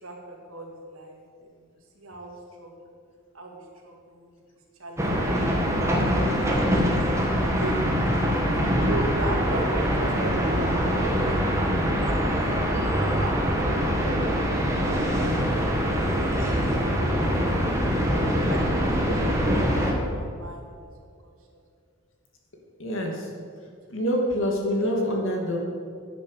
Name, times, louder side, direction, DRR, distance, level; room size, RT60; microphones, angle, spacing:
voice 1, 0.0-1.5 2.0-2.3 2.6-3.0 3.3-4.3 4.8-5.4 5.8-6.9 7.3-7.8 8.9-11.4 12.5-13.9 14.5-14.6 14.9-20.6 21.2-21.6, right 2 dB, 85° right, 0 dB, 2.4 m, -38 dB
sound 1, 5.0-19.9, equal, 15° right, 1.8 m, -24 dB
voice 2, 22.8-23.3 23.9-25.6, equal, 65° left, 0 dB, 2.5 m, -26 dB
10.0 x 9.4 x 7.1 m, 2.2 s
head